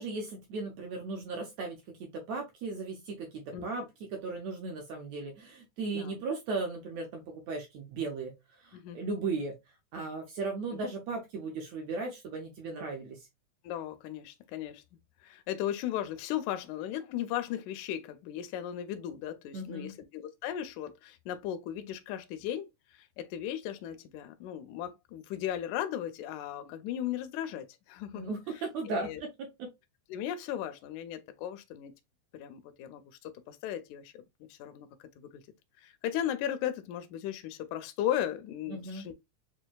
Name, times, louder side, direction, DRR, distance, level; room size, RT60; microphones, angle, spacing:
voice 1, 0.0-8.4 8.6-9.6 9.9-13.3 19.5-19.9 28.2-29.7 38.7-39.1, right 3 dB, 75° right, 1.7 m, -37 dB
voice 2, 13.6-14.8 15.2-28.3 28.9-29.2 30.1-31.9 32.3-34.2 34.5-34.9 35.2-35.3 35.8-39.1, left 11 dB, 80° left, 1.7 m, -36 dB
6.0 x 2.2 x 2.3 m
omnidirectional pair, 3.9 m